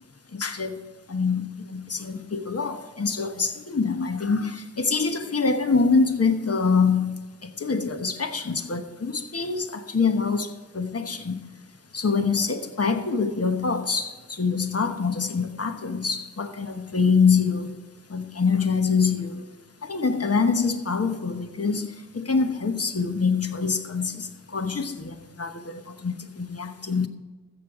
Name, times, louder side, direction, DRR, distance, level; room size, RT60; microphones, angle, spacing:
voice 1, 0.3-0.8 1.1-11.5 11.9-17.8 18.1-19.5 19.8-27.1, left 5 dB, 55° left, 1.1 m, -25 dB
13.5 x 8.1 x 4.9 m
wide cardioid pair, 45°, 30 cm